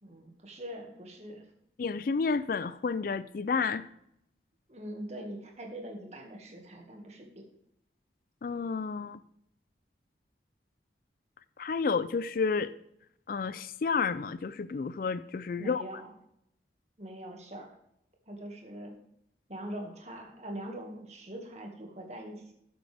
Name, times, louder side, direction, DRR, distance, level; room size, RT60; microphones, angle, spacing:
voice 1, 0.0-1.4 4.7-7.4 15.6-16.1 17.0-17.7 18.3-18.9 19.5-22.5, right 1 dB, 40° right, 2 dB, 1.9 m, -42 dB
voice 2, 1.8-3.9 8.4-9.2 11.6-12.7 13.3-15.8, left 5 dB, 50° left, 15 dB, 0.4 m, -30 dB
13.5 x 7.8 x 3.5 m, 0.75 s
head